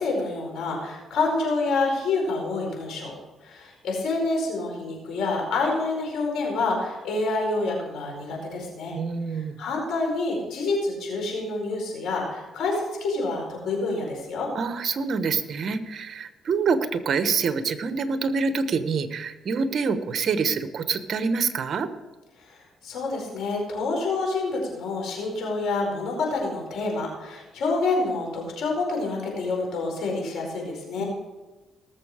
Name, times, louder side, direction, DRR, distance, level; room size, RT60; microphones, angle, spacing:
voice 1, 0.0-3.1 3.4-9.0 9.3-14.5 22.4-22.6 22.8-31.0, left 3 dB, 80° left, 0 dB, 4.8 m, -27 dB
voice 2, 8.9-9.6 14.5-21.9, right 5 dB, 55° right, 10 dB, 1.0 m, -26 dB
18.5 x 7.3 x 4.9 m, 1.2 s
cardioid pair, 105°, 0 cm